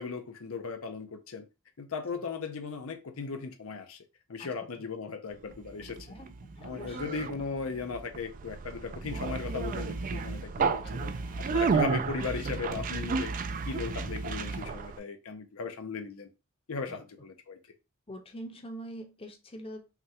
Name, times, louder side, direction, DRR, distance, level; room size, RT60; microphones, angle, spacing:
voice 1, 0.0-1.5 1.8-4.0 4.3-6.1 6.6-11.1 11.4-13.3 13.6-16.3 16.7-17.6, left 4 dB, 80° left, 0.7 m, -37 dB
voice 2, 4.4-4.9 6.1-7.2 10.8-11.6 16.9-17.0 18.1-19.9, equal, 25° left, 0.7 m, -45 dB
Conversation, 5.5-15.0, right 4 dB, 40° right, 0.3 m, -32 dB
5.8 x 2.3 x 2.8 m
head